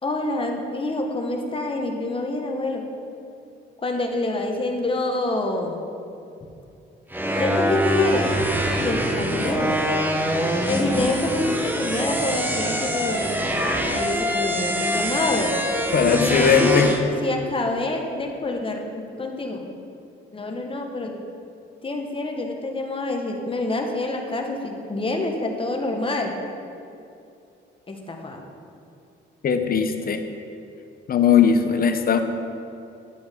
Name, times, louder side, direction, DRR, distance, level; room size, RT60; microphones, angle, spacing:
voice 1, 0.0-2.8 3.8-5.8 7.4-8.4 8.8-9.8 10.7-13.3 13.9-15.6 16.1-19.7 20.3-21.1 21.8-26.4 27.9-28.5, left 2 dB, 25° left, 2 dB, 1.2 m, -27 dB
sound 1, 7.1-17.0, equal, 10° right, 0.9 m, -24 dB
voice 2, 15.9-16.9 29.4-30.2 31.1-32.2, left 7 dB, 50° left, 7 dB, 0.7 m, -19 dB
11.0 x 7.8 x 3.6 m, 2.6 s
cardioid pair, 90°, 20 cm